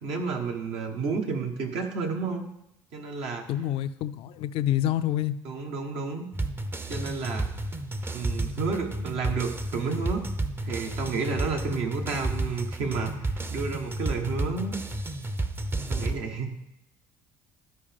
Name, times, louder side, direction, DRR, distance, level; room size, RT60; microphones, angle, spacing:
voice 1, 0.0-2.5 2.9-3.4 5.4-6.3 6.9-7.5 8.1-10.2 10.6-14.8 15.9-16.6, right 4 dB, 65° right, 3 dB, 1.4 m, -31 dB
voice 2, 3.5-5.4, left 12 dB, 60° left, 13 dB, 0.4 m, -27 dB
sound 1, 6.3-16.2, right 2 dB, 20° right, 0.7 m, -32 dB
13.0 x 4.8 x 3.5 m, 0.82 s
hypercardioid pair, 65°, 11 cm